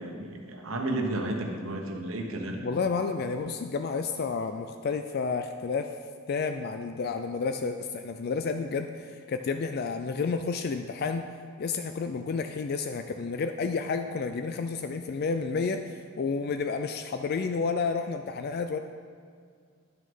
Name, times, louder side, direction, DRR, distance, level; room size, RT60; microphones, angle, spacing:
voice 1, 0.0-2.6, right 1 dB, 75° right, 2 dB, 1.3 m, -32 dB
voice 2, 2.6-5.9 6.3-11.3 11.6-18.8, left 4 dB, 50° left, 7 dB, 0.4 m, -30 dB
10.5 x 6.3 x 5.4 m, 2.1 s
head